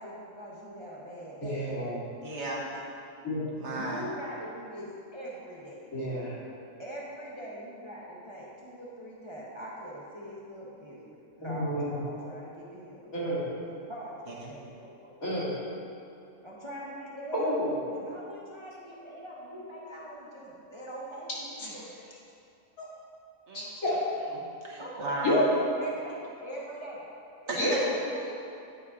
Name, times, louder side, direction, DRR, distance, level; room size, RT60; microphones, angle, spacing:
voice 1, 0.0-1.6 3.6-5.8 6.8-13.1 13.7-15.3 16.4-17.5 17.9-21.8 24.8-27.0 27.4-28.3, equal, 25° right, -6 dB, 0.8 m, -42 dB
voice 2, 1.4-2.0 3.2-3.5 5.9-6.4 11.4-11.9 13.1-13.4 15.2-15.5 17.3-18.0 21.6-21.9 22.8-22.9 23.5-24.0 25.2-25.4 27.6-27.7, equal, 80° left, -8 dB, 2.5 m, -30 dB
voice 3, 2.2-2.6 3.6-4.1 14.3-14.5 23.5-23.7 24.3-25.5 27.5-27.8, right 2 dB, 55° right, -3 dB, 1.3 m, -35 dB
9.5 x 4.1 x 4.8 m, 2.6 s
omnidirectional pair, 1.4 m